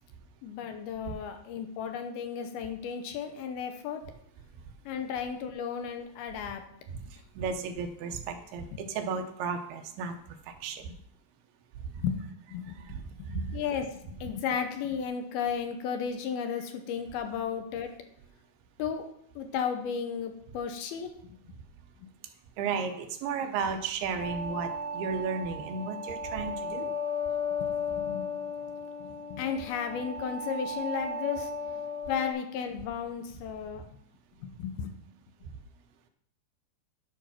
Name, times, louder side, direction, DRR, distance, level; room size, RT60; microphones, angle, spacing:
voice 1, 0.4-4.0 4.9-6.6 12.0-12.8 13.2-17.9 18.8-19.1 19.4-21.4 22.0-22.1 27.6-28.3 29.0-31.5 32.1-33.8 34.4-34.9, left 7 dB, 80° left, 6 dB, 2.8 m, -34 dB
voice 2, 6.9-10.9 11.8-12.0 12.7-13.6 22.6-26.9 35.4-35.6, right 5 dB, 80° right, 6 dB, 2.8 m, -34 dB
sound 1, 24.2-32.3, left 3 dB, 60° left, 2.0 m, -35 dB
12.0 x 5.2 x 5.9 m, 0.69 s
omnidirectional pair, 4.6 m